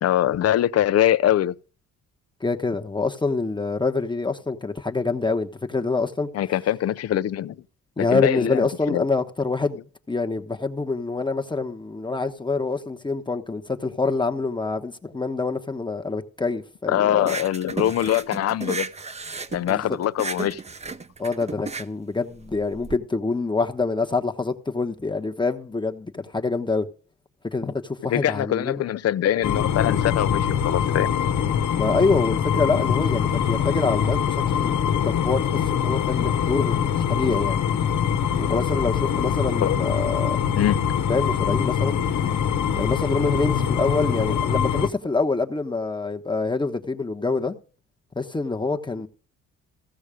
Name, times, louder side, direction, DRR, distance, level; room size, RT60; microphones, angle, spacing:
voice 1, 0.0-1.6 6.3-7.6 8.0-9.0 16.9-18.9 19.5-20.6 28.1-31.1 39.6-39.8 40.6-40.9, left 11 dB, 55° left, 0.7 m, -23 dB
voice 2, 2.4-6.3 8.0-9.8 10.1-17.3 19.7-19.8 21.2-26.9 27.5-28.8 31.7-37.6 38.4-40.4 41.1-42.0 42.8-47.5 48.2-49.1, left 3 dB, 15° left, 1.1 m, -26 dB
sound 1, 17.2-22.9, right 4 dB, 20° right, 0.7 m, -34 dB
sound 2, 29.4-44.9, left 8 dB, 75° left, 1.2 m, -23 dB
15.5 x 6.3 x 5.0 m
cardioid pair, 90°, 30 cm